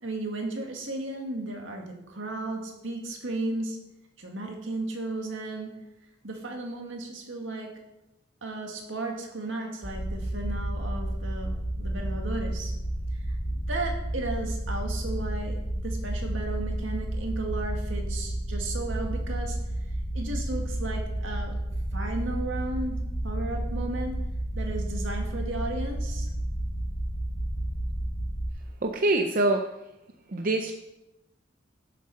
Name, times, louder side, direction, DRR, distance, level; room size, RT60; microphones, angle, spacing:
voice 1, 0.0-3.8 4.2-5.7 6.2-7.7 8.4-12.7 13.3-19.6 20.1-21.5 21.9-23.0 23.2-24.1 24.5-26.3, right 2 dB, 70° right, 1 dB, 1.9 m, -34 dB
sound 1, 9.8-28.5, right 1 dB, 25° left, 1.3 m, -31 dB
voice 2, 28.8-29.6 30.3-30.7, right 2 dB, 45° right, 4 dB, 0.6 m, -24 dB
11.5 x 7.6 x 4.2 m, 0.93 s
head